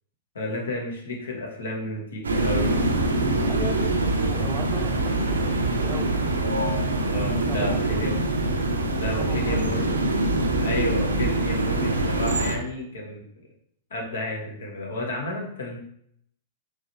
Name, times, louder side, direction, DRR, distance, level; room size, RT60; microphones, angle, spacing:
voice 1, 0.3-2.7 7.1-8.1 9.0-9.9 10.6-13.2 13.9-15.8, left 2 dB, 70° left, -1 dB, 1.2 m, -31 dB
sound 1, 2.2-12.6, right 2 dB, 80° right, 0.6 m, -24 dB
voice 2, 3.4-6.2 7.3-8.1 9.1-10.2, right 4 dB, 30° right, 6 dB, 0.6 m, -38 dB
4.7 x 3.2 x 3.0 m, 0.70 s
figure-of-eight pair, 100°, 0 cm